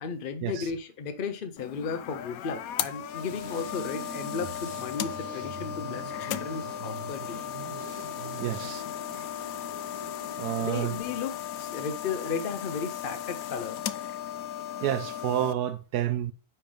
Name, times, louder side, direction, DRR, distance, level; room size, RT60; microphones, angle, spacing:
voice 1, 0.0-7.4 8.5-8.7 10.6-13.8, left 5 dB, 50° left, 0.6 m, -35 dB
sound 1, 1.6-15.5, left 11 dB, 75° left, 1.0 m, -36 dB
sound 2, 3.3-8.8, right 7 dB, 60° right, 0.9 m, -44 dB
sound 3, 5.8-10.9, right 2 dB, 20° right, 1.0 m, -47 dB
voice 2, 8.4-8.8 10.4-11.0 14.8-16.3, right 12 dB, 80° right, 1.1 m, -29 dB
9.9 x 3.4 x 5.2 m
omnidirectional pair, 1.7 m